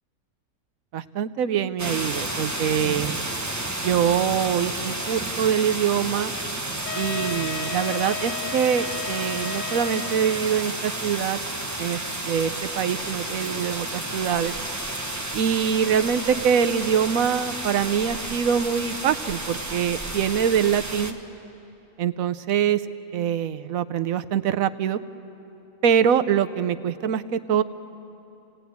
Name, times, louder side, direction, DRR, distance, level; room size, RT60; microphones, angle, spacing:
voice 1, 0.9-3.2 3.8-6.3 7.0-11.4 11.8-14.5 15.3-21.2 22.0-22.8 23.1-25.0 25.8-27.6, right 8 dB, 70° right, 11 dB, 1.1 m, -24 dB
sound 1, 1.8-21.1, right 2 dB, 15° right, 1.1 m, -31 dB
Wind instrument woodwind instrument, 6.9-10.7, left 9 dB, 65° left, 1.2 m, -34 dB
28.0 x 18.0 x 9.4 m, 2.9 s
omnidirectional pair, 1.5 m